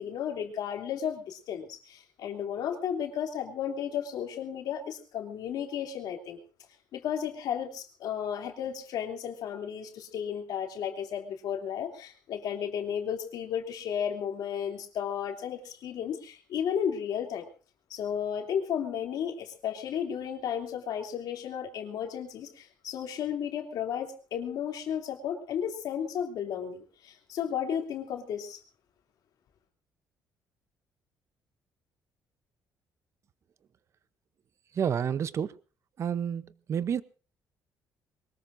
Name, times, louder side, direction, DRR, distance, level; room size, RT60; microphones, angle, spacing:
voice 1, 0.0-6.4 6.9-17.4 17.9-28.6, left 8 dB, 65° left, 3.0 m, -33 dB
voice 2, 34.8-35.5 36.0-36.4 36.7-37.0, right 8 dB, 40° right, 0.8 m, -29 dB
22.5 x 20.0 x 2.6 m
cardioid pair, 140°, 7 cm